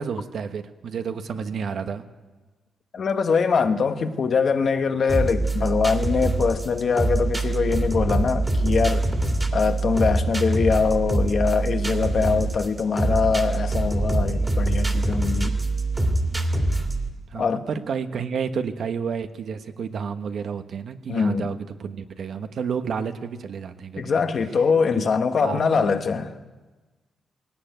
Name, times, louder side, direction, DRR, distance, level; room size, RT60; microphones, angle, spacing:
voice 1, 0.0-2.0 17.3-24.2 24.9-25.0 25.4-26.0, right 6 dB, 50° right, 8 dB, 1.2 m, -30 dB
voice 2, 2.9-9.1 9.5-15.5 17.3-17.6 21.1-21.5 24.0-26.3, left 5 dB, 40° left, 7 dB, 1.2 m, -23 dB
sound 1, 5.1-17.1, right 2 dB, 10° right, 2.2 m, -24 dB
21.0 x 17.5 x 9.3 m, 1.2 s
wide cardioid pair, 180°, 0 cm